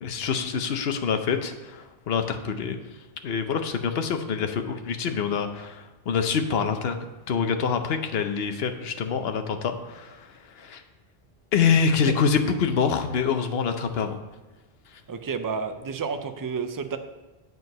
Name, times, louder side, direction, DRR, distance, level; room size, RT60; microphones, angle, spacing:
voice 1, 0.0-2.8 3.2-7.0 7.3-10.3 10.6-10.8 11.5-14.2, left 6 dB, 70° left, 7 dB, 1.0 m, -26 dB
voice 2, 15.1-17.0, right 5 dB, 30° right, 8 dB, 0.3 m, -30 dB
7.9 x 4.6 x 6.5 m, 1.1 s
omnidirectional pair, 1.1 m